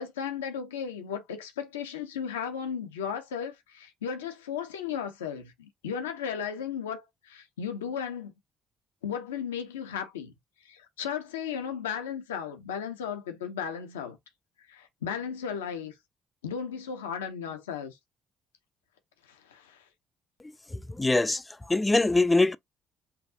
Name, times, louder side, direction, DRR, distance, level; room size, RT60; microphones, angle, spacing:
voice 1, 0.0-8.3 9.0-10.3 10.6-14.2 14.7-15.9 16.4-18.0 19.3-19.8, left 7 dB, 90° left, 0.7 m, -35 dB
voice 2, 20.7-22.6, left 2 dB, 20° left, 0.4 m, -24 dB
5.6 x 2.4 x 2.7 m
hypercardioid pair, 50°, 0 cm